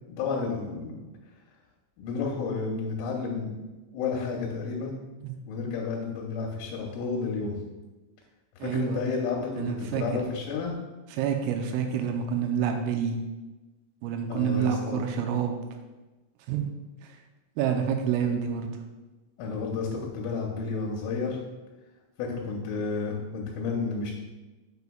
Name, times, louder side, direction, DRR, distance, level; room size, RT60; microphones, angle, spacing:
voice 1, 0.1-1.0 2.0-3.6 3.9-4.9 5.5-7.6 8.6-10.7 14.3-15.0 18.2-18.3 19.4-21.4 22.2-24.1, left 4 dB, 85° left, -2 dB, 3.1 m, -31 dB
voice 2, 8.6-9.0 9.5-10.0 11.2-13.2 14.0-15.6 16.5-16.7 17.6-18.7, right 8 dB, 90° right, 4 dB, 3.2 m, -28 dB
6.9 x 6.3 x 2.3 m, 1.1 s
omnidirectional pair, 5.9 m